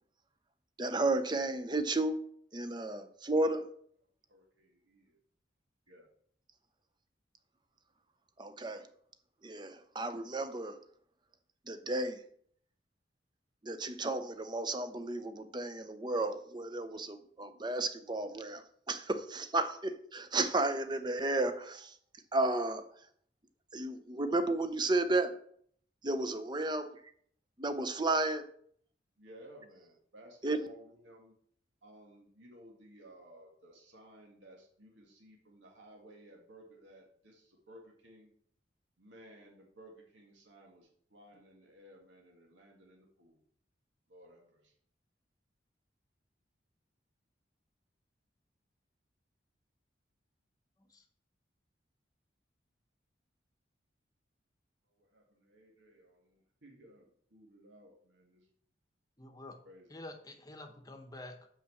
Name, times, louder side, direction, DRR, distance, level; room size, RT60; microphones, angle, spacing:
voice 1, 0.8-2.2 2.5-3.7 8.4-8.9 9.4-10.8 11.7-12.2 13.6-22.0 22.3-22.9 23.7-25.3 26.0-27.0 27.6-28.5 30.4-30.7, right 2 dB, 25° right, 10 dB, 0.6 m, -33 dB
voice 2, 4.3-5.2 5.9-6.1 29.2-31.3 31.8-38.3 39.0-43.4 44.1-44.7 55.0-58.4 59.6-59.9, right 1 dB, 85° right, 0 dB, 1.8 m, -57 dB
voice 3, 59.2-59.6 59.9-61.5, left 2 dB, 20° left, 5 dB, 0.9 m, -48 dB
5.8 x 5.7 x 7.0 m, 0.63 s
head